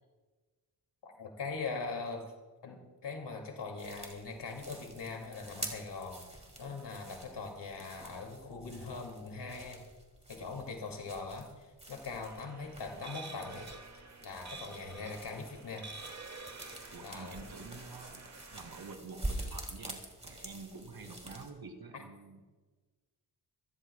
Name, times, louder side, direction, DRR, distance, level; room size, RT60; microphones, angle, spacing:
voice 1, 1.0-2.2 2.6-9.8 10.3-13.7 14.2-15.9 17.0-17.6, left 4 dB, 80° left, 2 dB, 2.4 m, -41 dB
sound 1, 3.8-21.5, right 1 dB, 15° right, 2.7 m, -47 dB
sound 2, 12.2-18.9, right 3 dB, 40° right, 1.5 m, -49 dB
voice 2, 16.9-22.4, right 4 dB, 60° right, 4 dB, 2.4 m, -48 dB
26.0 x 14.5 x 2.3 m, 1.3 s
wide cardioid pair, 115°, 41 cm